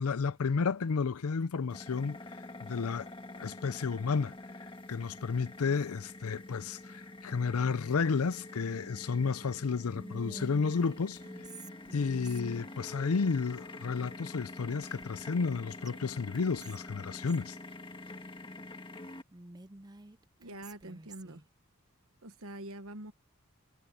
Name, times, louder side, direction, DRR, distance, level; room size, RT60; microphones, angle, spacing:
voice 1, 0.0-2.2 2.6-3.1 3.4-4.4 4.9-11.2 11.9-17.6, left 5 dB, 85° left, 0.5 m, -32 dB
sound 1, 1.7-19.2, left 2 dB, 25° left, 1.7 m, -46 dB
Whispering, 9.9-12.8 14.8-15.6 15.8-15.9 16.3-17.5 19.3-21.4, right 2 dB, 20° right, 0.6 m, -50 dB
voice 2, 20.4-21.4 22.2-23.1, right 1 dB, 75° right, 1.3 m, -44 dB
head